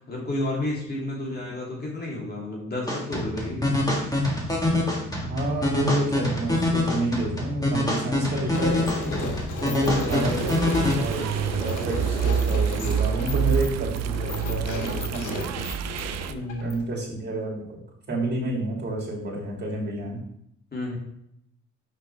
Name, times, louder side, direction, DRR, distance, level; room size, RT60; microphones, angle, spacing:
voice 1, 0.0-3.6 9.6-10.1 16.3-17.0 20.7-21.0, left 1 dB, 35° left, -3 dB, 2.6 m, -31 dB
sound 1, 2.9-10.9, left 1 dB, 10° left, 1.7 m, -25 dB
voice 2, 5.3-10.5 10.9-11.3 11.6-15.5 16.6-17.8 18.1-20.2, right 1 dB, 35° right, -3 dB, 2.5 m, -30 dB
sound 2, 8.5-17.0, left 2 dB, 85° left, 1.2 m, -34 dB
sound 3, 10.1-16.3, right 8 dB, 60° right, 0.5 m, -27 dB
5.9 x 5.4 x 3.4 m, 0.76 s
cardioid pair, 90°, 30 cm